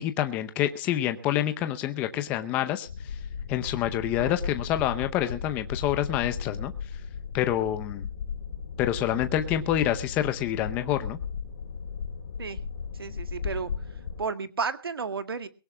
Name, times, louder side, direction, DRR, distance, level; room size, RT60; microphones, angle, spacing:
voice 1, 0.0-2.9 3.5-6.7 7.3-8.1 8.8-11.2, left 12 dB, 10° left, 9 dB, 0.7 m, -27 dB
sound 1, 2.9-14.2, left 6 dB, 50° left, 3.5 m, -36 dB
voice 2, 13.0-13.7 14.2-15.5, right 5 dB, 75° right, 11 dB, 2.0 m, -32 dB
22.5 x 17.0 x 2.3 m, 0.34 s
hypercardioid pair, 165°, 13 cm